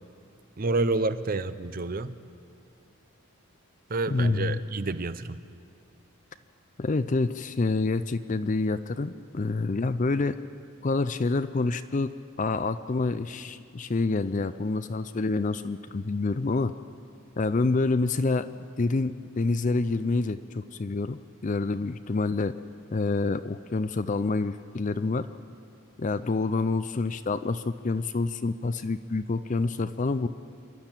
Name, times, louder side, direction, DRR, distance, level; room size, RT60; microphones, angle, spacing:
voice 1, 0.6-2.1 3.9-5.4, right 3 dB, 40° right, 13 dB, 0.6 m, -29 dB
voice 2, 4.1-4.6 6.8-10.4 10.8-12.1 12.4-16.7 17.4-18.5 18.8-22.5 22.9-25.3 26.0-30.3, left 3 dB, 35° left, 12 dB, 0.4 m, -27 dB
27.0 x 12.0 x 8.9 m, 2.5 s
head